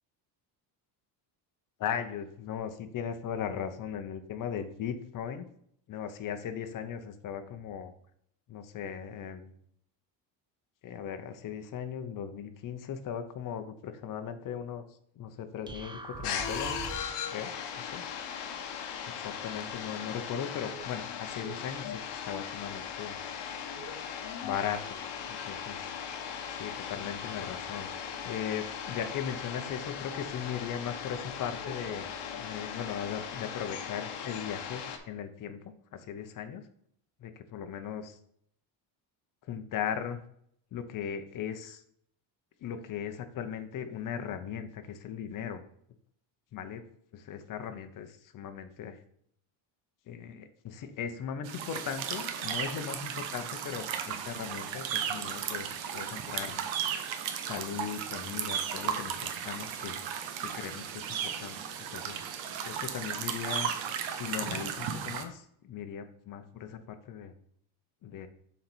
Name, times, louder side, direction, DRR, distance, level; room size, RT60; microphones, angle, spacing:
voice 1, 1.8-5.5 5.9-7.9 8.5-9.5 10.8-14.8 15.2-17.0 17.3-17.5 17.8-18.4 19.2-23.2 24.4-24.8 25.3-26.1 26.5-36.6 37.2-38.2 39.5-40.2 40.7-41.8 42.6-45.6 46.5-46.8 47.1-49.0 50.1-55.7 55.9-56.6 57.4-60.1 60.4-61.6 61.9-62.3 62.7-63.7 64.1-67.3 68.0-68.3, left 8 dB, 40° left, 8 dB, 0.8 m, -38 dB
sound 1, 15.7-17.2, right 3 dB, 10° right, 0.3 m, -42 dB
sound 2, 16.2-35.0, left 7 dB, 55° left, 1.1 m, -38 dB
sound 3, 51.5-65.2, right 8 dB, 70° right, 1.0 m, -35 dB
7.3 x 4.1 x 4.5 m, 0.68 s
cardioid pair, 145°, 48 cm